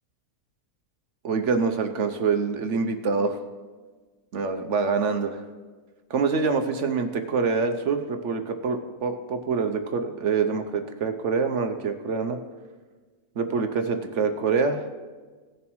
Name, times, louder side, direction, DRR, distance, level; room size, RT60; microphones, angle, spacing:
voice 1, 1.2-3.4 4.3-5.4 6.1-12.4 13.4-14.9, right 5 dB, 60° right, 7 dB, 0.9 m, -25 dB
18.0 x 7.1 x 3.0 m, 1.4 s
omnidirectional pair, 1.6 m